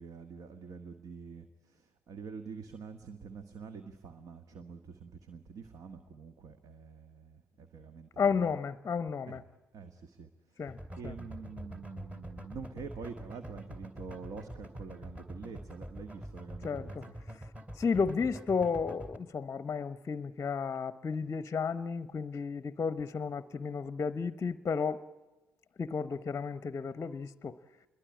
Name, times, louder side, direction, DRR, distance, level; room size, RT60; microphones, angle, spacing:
voice 1, 0.0-8.6 9.2-9.5 9.7-10.7 11.0-17.1, right 5 dB, 50° right, 8 dB, 1.6 m, -46 dB
voice 2, 8.2-9.4 10.6-10.8 11.0-11.1 16.6-17.0 17.8-25.0 25.8-27.6, left 5 dB, 30° left, 15 dB, 0.8 m, -33 dB
sound 1, 10.7-19.2, equal, 15° right, 2.7 m, -45 dB
27.5 x 22.5 x 8.8 m, 1.1 s
figure-of-eight pair, 50°, 8 cm